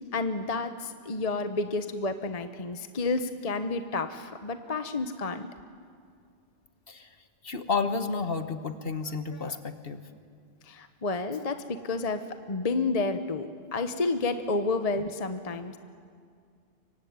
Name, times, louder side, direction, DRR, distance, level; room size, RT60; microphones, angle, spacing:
voice 1, 0.1-5.5 10.7-15.8, left 3 dB, 35° left, 9 dB, 1.0 m, -30 dB
voice 2, 7.4-10.1, left 4 dB, 50° left, 9 dB, 1.5 m, -31 dB
24.5 x 24.0 x 9.6 m, 2.1 s
omnidirectional pair, 1.2 m